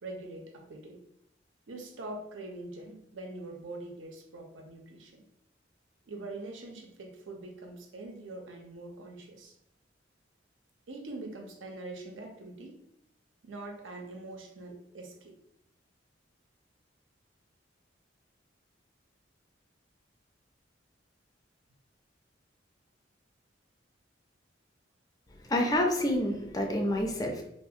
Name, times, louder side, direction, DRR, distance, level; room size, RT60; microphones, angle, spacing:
voice 1, 0.0-1.0 1.7-5.3 6.1-9.5 10.9-12.8 13.4-15.4, right 2 dB, 85° right, 3 dB, 0.5 m, -43 dB
voice 2, 25.5-27.4, left 1 dB, 20° left, 2 dB, 0.3 m, -28 dB
2.4 x 2.3 x 2.7 m, 0.77 s
head